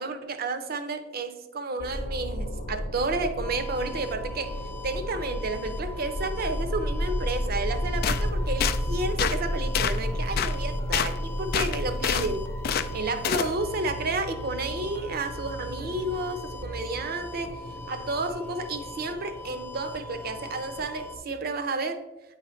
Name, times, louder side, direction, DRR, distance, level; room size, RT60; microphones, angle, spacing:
voice 1, 0.0-4.5 4.8-12.5 12.9-17.5 17.9-22.0, right 2 dB, 55° right, 8 dB, 0.6 m, -31 dB
sound 1, 1.8-21.2, equal, 85° left, 0.8 m, -33 dB
sound 2, 3.4-21.2, left 3 dB, 10° left, 0.6 m, -43 dB
sound 3, 8.0-8.2 8.6-8.8 9.2-9.4 9.7-10.0 10.4-10.5 10.9-11.1 11.5-12.3 12.6-12.9 13.2-13.5, left 9 dB, 55° left, 0.3 m, -26 dB
8.9 x 4.2 x 3.1 m, 0.99 s
head